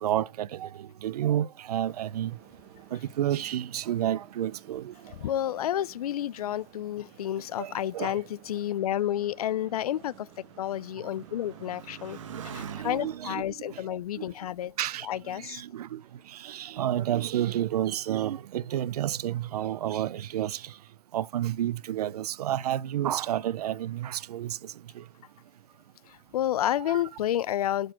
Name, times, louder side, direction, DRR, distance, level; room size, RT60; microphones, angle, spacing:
voice 1, 0.0-2.3 2.9-4.9 7.6-8.2 12.3-13.4 13.7-13.8 14.2-14.3 14.8-15.1 15.3-16.0 16.3-20.6 21.1-25.0 26.9-27.0, right 12 dB, 80° right, 0.5 m, -30 dB
sound 1, 1.8-13.2, right 10 dB, 25° right, 1.3 m, -54 dB
voice 2, 5.2-10.3 10.6-12.2 12.5-14.7 15.0-15.6 26.1-27.9, left 12 dB, 70° left, 0.4 m, -30 dB
Motorcycle, 6.6-15.6 16.3-16.9, right 7 dB, 55° right, 1.4 m, -48 dB
6.5 x 6.2 x 7.4 m
hypercardioid pair, 180°, 20 cm